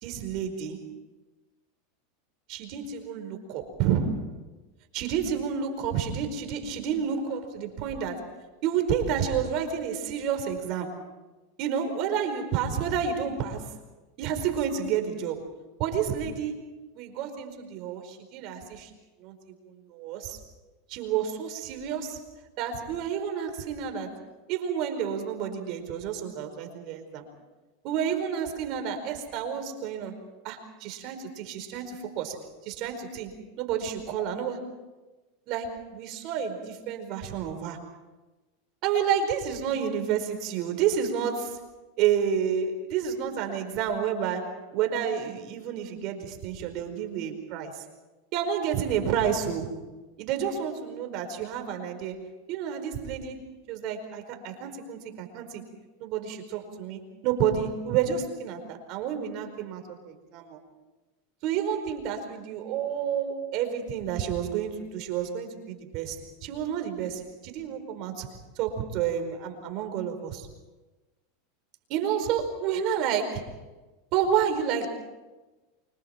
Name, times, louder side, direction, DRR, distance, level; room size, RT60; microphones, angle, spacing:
voice 1, 0.0-0.9 2.5-4.3 4.9-8.3 8.6-11.0 11.6-13.7 14.2-15.5 15.8-16.6 17.0-18.9 19.2-19.3 19.6-20.4 20.9-22.2 22.6-24.1 24.5-27.3 27.8-30.1 30.4-34.7 35.5-37.8 38.8-41.6 42.0-47.8 48.3-49.8 50.2-52.2 52.5-53.4 53.7-55.6 56.0-60.6 61.4-68.3 68.5-70.5 71.9-73.5 74.1-74.9, right 8 dB, 55° right, 6 dB, 4.8 m, -30 dB
30.0 x 25.0 x 4.5 m, 1.1 s
supercardioid pair, 120°, 0 cm